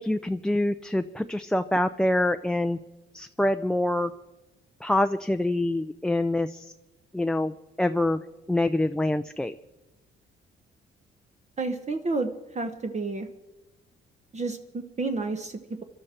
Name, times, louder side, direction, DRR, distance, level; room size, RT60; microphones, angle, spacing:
voice 1, 0.0-2.8 3.1-4.1 4.8-6.7 7.1-8.2 8.5-9.5, left 1 dB, 5° left, 8 dB, 0.5 m, -25 dB
voice 2, 11.6-13.3 14.3-15.8, right 3 dB, 35° right, 6 dB, 1.2 m, -30 dB
24.5 x 12.5 x 4.4 m, 1.0 s
cardioid pair, 90°, 20 cm